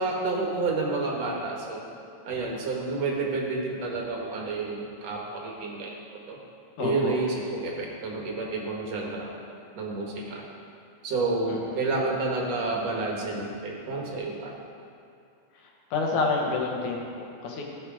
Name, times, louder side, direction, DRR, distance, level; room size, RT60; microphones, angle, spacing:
voice 1, 0.0-1.9 2.2-5.9 6.3-6.4 6.8-9.3 9.7-10.4 11.0-14.5, right 3 dB, 65° right, -1 dB, 2.5 m, -29 dB
voice 2, 6.8-7.2 11.5-11.6 15.9-17.6, left 4 dB, 90° left, 0 dB, 2.7 m, -28 dB
15.5 x 6.4 x 5.0 m, 2.5 s
omnidirectional pair, 3.3 m